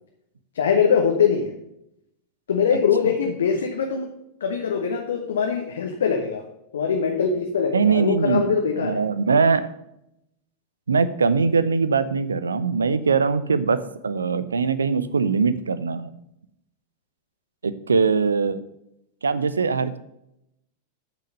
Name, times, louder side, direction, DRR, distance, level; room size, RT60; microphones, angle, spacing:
voice 1, 0.5-1.5 2.5-4.1 4.4-6.4 6.7-9.0, left 6 dB, 65° left, 3 dB, 1.0 m, -22 dB
voice 2, 7.7-9.6 10.9-16.1 17.6-18.6 19.2-20.0, right 5 dB, 75° right, 15 dB, 0.5 m, -21 dB
8.5 x 6.1 x 6.4 m, 0.81 s
figure-of-eight pair, 90°, 0 cm